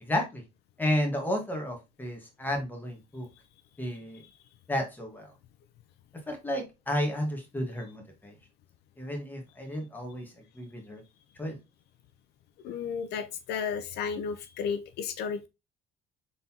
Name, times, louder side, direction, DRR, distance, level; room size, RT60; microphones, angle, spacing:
voice 1, 0.0-0.4 0.8-3.3 3.8-4.2 4.7-5.3 6.3-8.3 9.0-10.3 10.5-11.0 11.4-11.6, left 1 dB, 10° left, 1.4 m, -32 dB
voice 2, 12.6-15.5, left 6 dB, 75° left, 0.5 m, -33 dB
3.9 x 3.9 x 2.8 m
cardioid pair, 110°, 17 cm